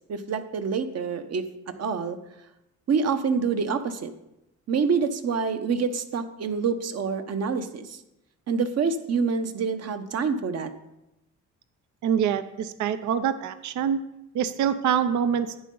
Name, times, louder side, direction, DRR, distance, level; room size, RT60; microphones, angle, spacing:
voice 1, 0.1-1.4 1.8-2.2 2.9-4.1 4.7-8.0 8.5-10.7, right 5 dB, 55° right, 9 dB, 1.1 m, -26 dB
voice 2, 12.0-14.0 14.3-15.5, right 8 dB, 70° right, 12 dB, 0.6 m, -25 dB
11.0 x 9.4 x 3.9 m, 0.89 s
cardioid pair, 90°, 30 cm